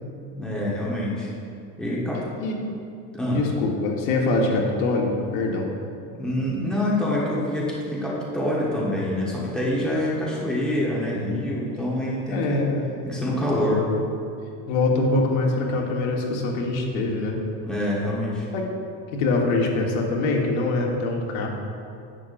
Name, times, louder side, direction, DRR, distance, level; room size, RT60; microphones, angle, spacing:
voice 1, 0.3-1.3 1.8-2.2 3.1-3.4 6.1-12.6 13.0-13.9 17.6-18.5, left 1 dB, ahead, -6 dB, 1.2 m, -26 dB
voice 2, 3.3-5.7 12.3-12.9 14.7-17.4 18.5-18.6 19.1-21.5, left 2 dB, 85° left, 0 dB, 1.5 m, -24 dB
10.5 x 8.4 x 2.6 m, 2.5 s
cardioid pair, 170°, 40 cm